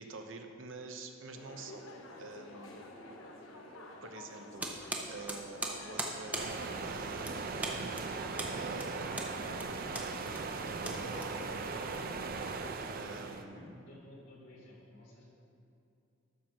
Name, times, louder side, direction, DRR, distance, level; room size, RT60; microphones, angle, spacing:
voice 1, 0.0-1.9 2.2-2.8 4.0-7.4 8.5-10.2 10.7-12.3 12.9-13.6, right 3 dB, 70° right, 5 dB, 0.8 m, -48 dB
sound 1, 1.3-12.2, left 2 dB, 90° left, 1.0 m, -50 dB
sound 2, 4.6-11.8, right 2 dB, 5° right, 0.7 m, -41 dB
sound 3, 6.3-13.4, right 4 dB, 45° right, 0.5 m, -39 dB
voice 2, 13.1-15.2, left 1 dB, 65° left, -4 dB, 2.3 m, -54 dB
12.0 x 4.5 x 6.3 m, 2.7 s
head